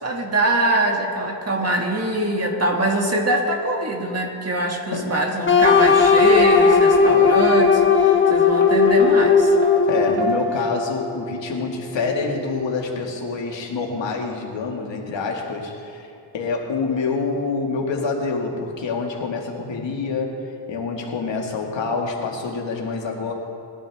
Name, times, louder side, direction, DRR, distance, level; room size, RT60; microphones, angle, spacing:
voice 1, 0.0-9.5, right 1 dB, 35° right, 1 dB, 1.8 m, -23 dB
sound 1, 5.5-10.4, left 5 dB, 25° left, 1.2 m, -16 dB
sound 2, 6.4-13.5, left 1 dB, 60° right, 1.7 m, -30 dB
voice 2, 9.9-23.3, left 4 dB, 75° left, 0 dB, 2.0 m, -26 dB
20.0 x 11.5 x 3.5 m, 2.6 s
wide cardioid pair, 110°, 45 cm